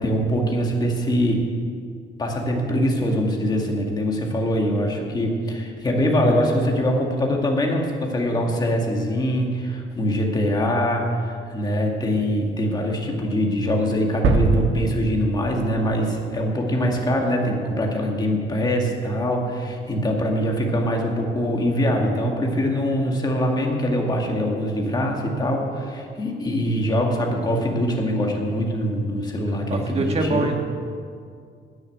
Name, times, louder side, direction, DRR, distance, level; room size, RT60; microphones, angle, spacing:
voice 1, 0.0-1.5 2.2-30.5, equal, 20° left, 0 dB, 1.8 m, -23 dB
sound 1, 14.2-16.1, right 3 dB, 75° right, 1.4 m, -23 dB
voice 2, 29.7-30.6, right 3 dB, 30° right, 3 dB, 1.5 m, -24 dB
13.0 x 8.0 x 9.9 m, 2.2 s
cardioid pair, 175°, 20 cm